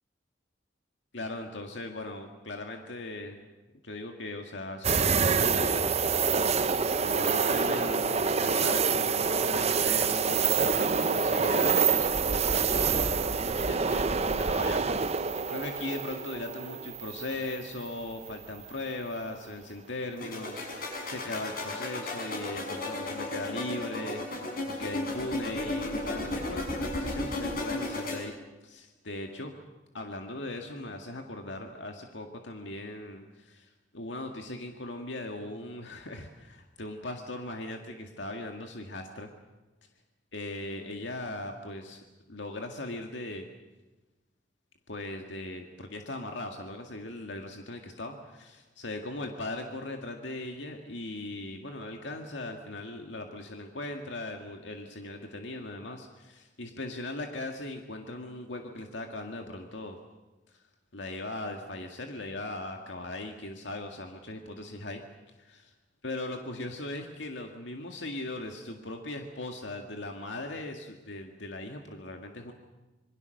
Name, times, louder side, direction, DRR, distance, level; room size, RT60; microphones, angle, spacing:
voice 1, 1.1-3.5 3.8-6.0 7.0-28.3 28.6-29.5 29.9-39.3 40.3-42.0 42.3-43.5 44.9-60.0 60.5-60.6 60.9-65.0 65.4-65.7 66.0-72.5, left 2 dB, 80° left, 3 dB, 2.0 m, -39 dB
sound 1, 4.8-17.9 18.3-18.4 20.8-21.2, right 5 dB, 35° right, 0.8 m, -27 dB
sound 2, 20.2-28.2, left 2 dB, 55° left, 6.4 m, -34 dB
27.0 x 22.5 x 6.6 m, 1.2 s
head